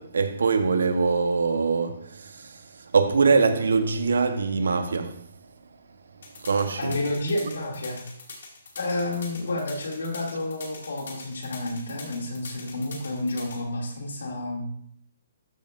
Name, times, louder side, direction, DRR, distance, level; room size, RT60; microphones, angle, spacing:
voice 1, 0.0-2.5 2.9-5.2 6.4-6.9, right 4 dB, 90° right, 1.0 m, -23 dB
sound 1, 6.2-13.6, left 4 dB, 60° left, 2.1 m, -42 dB
voice 2, 6.8-8.0 8.8-14.6, left 2 dB, 85° left, 2.4 m, -30 dB
13.0 x 7.3 x 2.5 m
hypercardioid pair, 175°, 0 cm